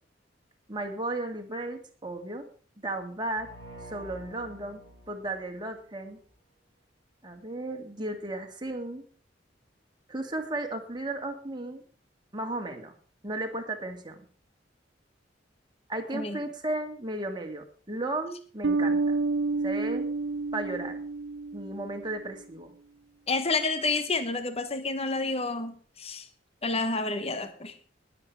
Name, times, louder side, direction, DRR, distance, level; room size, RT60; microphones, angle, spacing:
voice 1, 0.7-2.5 2.8-3.5 3.8-4.8 5.1-6.2 7.2-9.0 10.1-11.8 12.3-12.9 13.2-14.2 15.9-19.2 19.6-20.1 20.5-21.0 21.5-22.7, right 2 dB, 25° right, 4 dB, 2.2 m, -34 dB
sound 1, 3.3-6.2, right 1 dB, 75° left, 4.1 m, -48 dB
Bass guitar, 18.6-22.1, right 3 dB, 70° right, 0.6 m, -29 dB
voice 2, 23.3-26.3 26.6-27.8, left 3 dB, 35° left, 10 dB, 1.1 m, -29 dB
20.0 x 7.9 x 4.7 m, 0.41 s
head